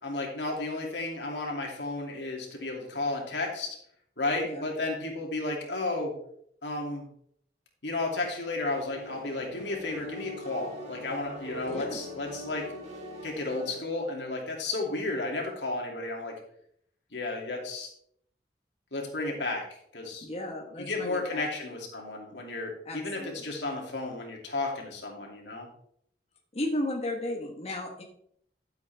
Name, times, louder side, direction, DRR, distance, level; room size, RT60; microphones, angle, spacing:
voice 1, 0.0-3.8 4.2-6.2 6.6-7.1 7.8-12.7 13.2-16.3 17.1-17.9 18.9-19.7 19.9-20.2 20.8-25.7, left 2 dB, 85° left, 0 dB, 2.8 m, -33 dB
sound 1, 8.7-13.8, equal, 45° right, 3.4 m, -42 dB
voice 2, 20.2-21.5 22.8-23.6 26.5-28.0, left 1 dB, 35° left, 0 dB, 1.5 m, -34 dB
12.0 x 8.0 x 3.5 m, 0.68 s
head